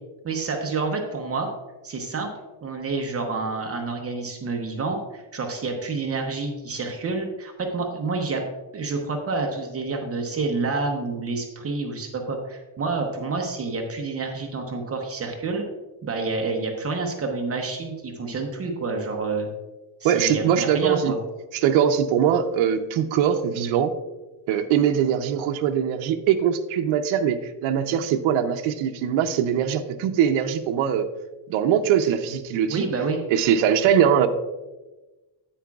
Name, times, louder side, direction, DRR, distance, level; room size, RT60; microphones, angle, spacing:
voice 1, 0.2-1.5 1.8-2.3 2.6-8.4 8.7-15.6 16.0-19.5 20.0-21.2 32.7-33.2, right 3 dB, 30° right, 3 dB, 0.8 m, -28 dB
voice 2, 20.0-21.1 21.5-23.9 24.5-31.1 31.5-32.8 33.3-34.3, right 8 dB, 75° right, 6 dB, 0.7 m, -22 dB
9.9 x 8.5 x 2.3 m, 1.1 s
cardioid pair, 165°, 49 cm